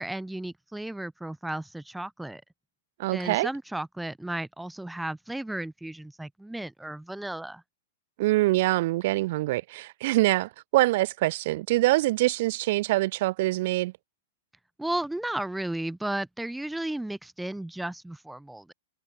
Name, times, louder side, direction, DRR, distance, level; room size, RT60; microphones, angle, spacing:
voice 1, 0.0-2.4 3.1-7.6 14.8-18.7, right 1 dB, 5° right, 1.7 m, -34 dB
voice 2, 3.0-3.5 8.2-13.9, right 18 dB, 55° right, 3.6 m, -24 dB
open air
hypercardioid pair, 115°, 0 cm